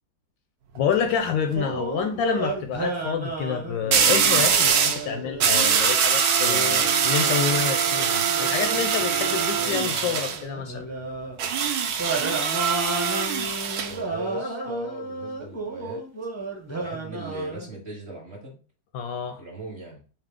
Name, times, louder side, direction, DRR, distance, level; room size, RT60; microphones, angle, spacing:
voice 1, 0.8-10.9 18.9-19.4, left 8 dB, 75° left, 1.1 m, -28 dB
sound 1, 0.8-1.1 3.9-5.0 5.4-10.4 11.4-13.9, right 7 dB, 75° right, 0.8 m, -23 dB
sound 2, 1.5-5.8 6.4-11.4 12.0-17.7, right 2 dB, 10° right, 1.0 m, -33 dB
voice 2, 13.9-16.0 16.7-18.6 19.4-20.0, right 1 dB, 35° right, 1.2 m, -37 dB
5.0 x 2.9 x 3.5 m
omnidirectional pair, 2.3 m